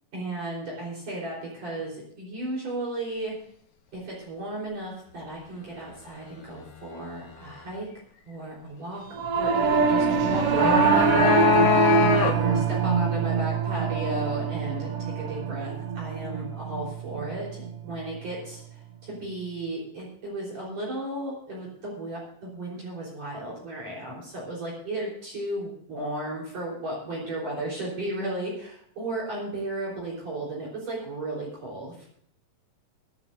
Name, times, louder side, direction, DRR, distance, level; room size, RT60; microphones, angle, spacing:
voice 1, 0.1-3.3 3.9-7.9 8.3-18.6 19.0-32.1, right 1 dB, 50° right, -5 dB, 5.2 m, -34 dB
Singing / Musical instrument, 9.1-18.7, right 6 dB, 70° right, 1.4 m, -25 dB
sound 1, 10.3-12.7, left 6 dB, 80° left, 3.2 m, -23 dB
23.0 x 11.5 x 2.6 m, 0.63 s
omnidirectional pair, 3.9 m